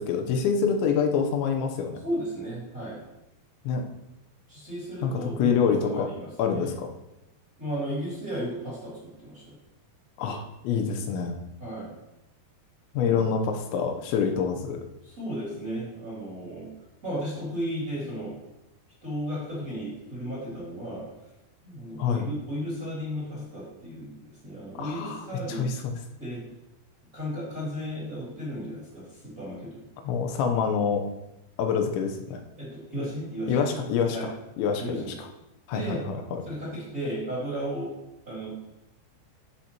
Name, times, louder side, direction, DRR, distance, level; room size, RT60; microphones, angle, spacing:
voice 1, 0.0-2.0 3.7-3.8 5.0-6.1 6.4-6.9 10.2-11.4 12.9-14.8 22.0-22.3 24.8-25.9 30.0-31.0 31.6-32.4 33.5-34.2 34.6-35.3 35.7-36.4, left 6 dB, 90° left, 4 dB, 3.1 m, -26 dB
voice 2, 2.0-3.0 4.5-6.7 7.6-9.5 11.6-11.9 12.9-13.4 15.0-16.7 17.0-18.3 19.0-21.0 21.6-24.2 24.4-25.7 26.2-26.4 27.1-29.8 32.6-33.6 34.1-34.2 34.8-35.1 35.7-36.1 36.4-37.9 38.3-38.5, equal, 25° right, -7 dB, 2.5 m, -34 dB
13.5 x 5.8 x 2.9 m, 0.93 s
omnidirectional pair, 5.2 m